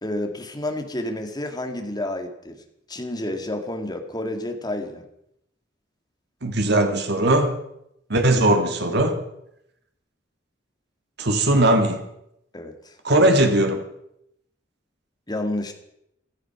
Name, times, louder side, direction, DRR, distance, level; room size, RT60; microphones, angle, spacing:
voice 1, 0.0-2.6 2.9-5.0 12.5-12.9 15.3-15.7, left 1 dB, 20° left, 4 dB, 2.2 m, -30 dB
voice 2, 6.4-7.6 8.1-9.2 11.2-12.1 13.0-13.9, right 1 dB, 60° right, 5 dB, 1.9 m, -19 dB
16.5 x 13.5 x 5.9 m, 0.79 s
head